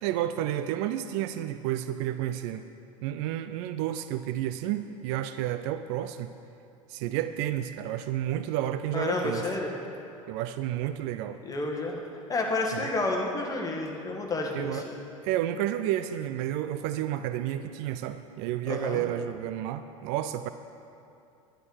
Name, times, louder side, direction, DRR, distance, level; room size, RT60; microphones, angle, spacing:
voice 1, 0.0-2.7 3.0-6.3 6.9-9.4 10.3-11.4 12.7-12.8 14.5-14.8 15.2-20.5, right 12 dB, 55° right, 10 dB, 0.5 m, -31 dB
voice 2, 8.9-9.7 11.5-12.0 12.3-15.0 18.7-19.0, left 2 dB, 20° left, 1 dB, 1.9 m, -30 dB
11.0 x 9.1 x 6.1 m, 2.7 s
figure-of-eight pair, 75°, 18 cm